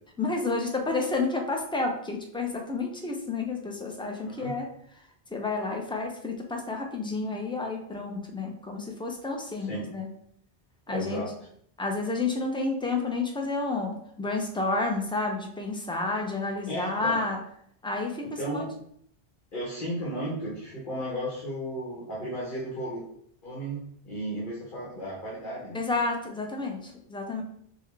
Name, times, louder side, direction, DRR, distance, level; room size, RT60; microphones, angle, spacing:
voice 1, 0.2-4.7 5.3-10.1 10.9-11.3 11.8-17.4 17.8-18.6 25.7-27.4, left 3 dB, 10° left, 1 dB, 0.3 m, -30 dB
voice 2, 10.9-11.3 16.7-17.2 18.2-18.7 19.5-23.0 23.4-25.8, equal, 55° left, -7 dB, 1.3 m, -34 dB
5.5 x 2.2 x 3.3 m, 0.68 s
omnidirectional pair, 1.1 m